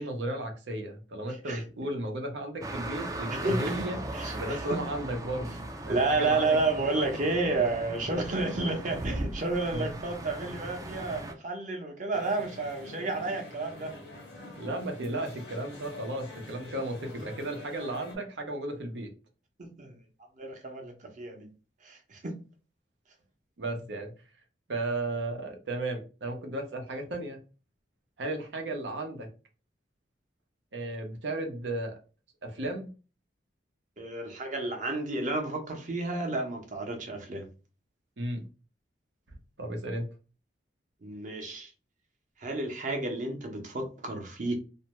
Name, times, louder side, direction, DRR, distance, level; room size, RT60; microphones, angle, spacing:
voice 1, 0.0-4.0 4.3-5.5 5.9-7.0 7.3-7.6 9.7-9.9 14.6-19.1 23.6-24.1 24.7-27.4 28.2-29.3 30.7-32.0 32.4-32.9 38.2-38.4 39.6-40.1, right 1 dB, 90° right, 0.7 m, -34 dB
sound 1, 2.6-11.3, right 1 dB, 20° right, 0.4 m, -38 dB
voice 2, 3.3-3.7 4.1-4.6 5.9-13.9 19.6-20.0 20.4-21.5 21.8-22.4 34.0-37.4 41.0-41.7 42.4-44.5, right 2 dB, 45° right, 0.7 m, -31 dB
sound 2, 12.1-18.2, left 2 dB, 75° left, 0.9 m, -46 dB
2.6 x 2.2 x 2.9 m
head